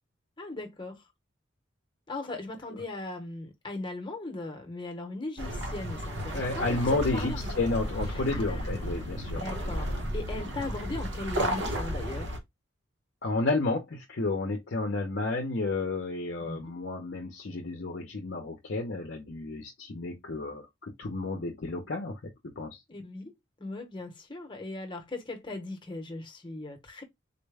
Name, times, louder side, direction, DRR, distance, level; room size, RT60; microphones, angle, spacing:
voice 1, 0.4-1.0 2.1-7.5 8.1-12.3 16.4-16.6 22.9-23.3 23.6-27.0, left 2 dB, 20° left, 0.8 m, -39 dB
sound 1, 5.4-12.4, equal, 60° right, 0.9 m, -33 dB
voice 2, 6.3-9.4 13.2-22.8, left 3 dB, 55° left, 0.6 m, -31 dB
3.9 x 2.1 x 3.3 m
head